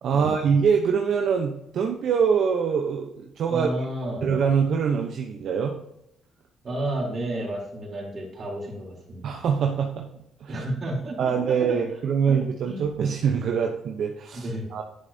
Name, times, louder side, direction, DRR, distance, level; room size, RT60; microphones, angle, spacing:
voice 1, 0.0-3.7 4.2-5.8 9.2-10.1 10.4-10.6 11.2-14.8, right 6 dB, 70° right, 2 dB, 0.9 m, -24 dB
voice 2, 3.5-4.4 6.6-9.3 10.5-11.8 12.3-12.4 12.6-12.9 14.3-14.7, right 1 dB, 45° right, -2 dB, 3.6 m, -32 dB
9.9 x 7.6 x 2.8 m, 0.82 s
cardioid pair, 90°, 0 cm